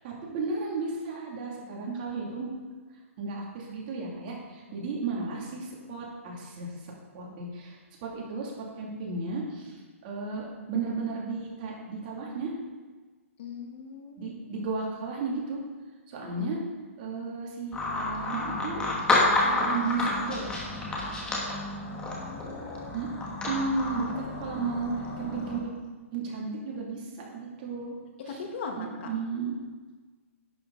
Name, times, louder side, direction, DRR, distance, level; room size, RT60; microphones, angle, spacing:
voice 1, 0.0-2.5 3.2-8.5 8.8-12.5 14.2-15.6 16.1-16.6 17.0-18.8 19.4-20.6 22.9-23.1 23.5-25.7 26.1-27.9 28.3-28.4 28.8-29.5, right 4 dB, 40° right, -2 dB, 2.8 m, -34 dB
voice 2, 13.4-14.3 16.2-16.6 21.9-23.0 25.2-25.3 28.3-29.1, left 5 dB, 50° left, 3 dB, 1.6 m, -40 dB
sound 1, 17.7-25.6, left 2 dB, 10° left, 1.8 m, -30 dB
11.0 x 8.0 x 4.0 m, 1.4 s
hypercardioid pair, 145°, 8 cm